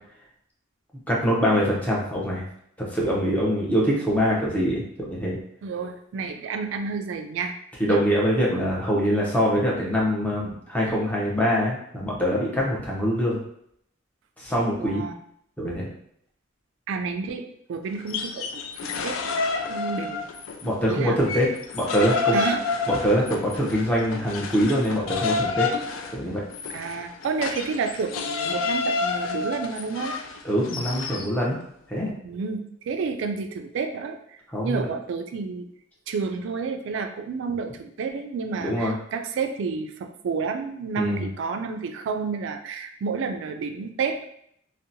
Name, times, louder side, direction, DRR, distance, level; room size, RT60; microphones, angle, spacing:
voice 1, 1.1-2.5 2.8-5.4 7.8-13.4 14.4-15.0 15.6-15.9 20.6-21.5 21.7-22.4 22.9-25.7 26.1-26.4 30.4-31.6 31.9-32.1 34.5-34.9 38.6-39.0 41.0-41.3, equal, 10° left, -4 dB, 0.6 m, -24 dB
voice 2, 5.6-7.6 7.9-8.0 14.8-15.2 16.9-18.5 18.8-19.4 19.7-20.3 20.9-21.2 22.3-22.6 26.7-30.1 32.2-35.7 36.1-44.3, right 5 dB, 70° right, 6 dB, 0.3 m, -30 dB
sound 1, 18.0-20.7 21.0-31.3, left 4 dB, 85° left, 0.3 m, -29 dB
2.7 x 2.1 x 2.6 m, 0.70 s
head